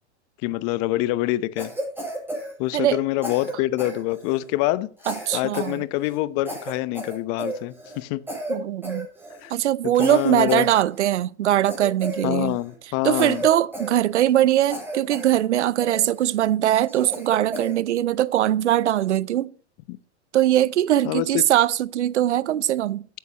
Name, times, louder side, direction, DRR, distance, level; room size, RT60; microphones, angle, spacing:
voice 1, 0.4-1.7 2.6-4.9 5.3-8.2 9.4-9.5 10.0-10.7 12.2-13.4 19.9-20.0 21.0-21.4, left 17 dB, 45° left, 0.9 m, -25 dB
Cough, 1.6-3.0 3.2-4.5 5.0-5.8 6.0-6.2 6.5-8.0 8.3-8.6 8.8-9.5 10.0-11.2 11.7-12.7 13.2-14.4 14.7-15.4 15.8-16.4 16.9-17.8, right 1 dB, 5° right, 7.0 m, -33 dB
voice 2, 5.1-5.8 8.5-9.1 9.5-12.6 13.0-19.5 20.3-23.1, right 12 dB, 80° right, 0.6 m, -21 dB
15.0 x 9.5 x 2.9 m
hypercardioid pair, 105°, 34 cm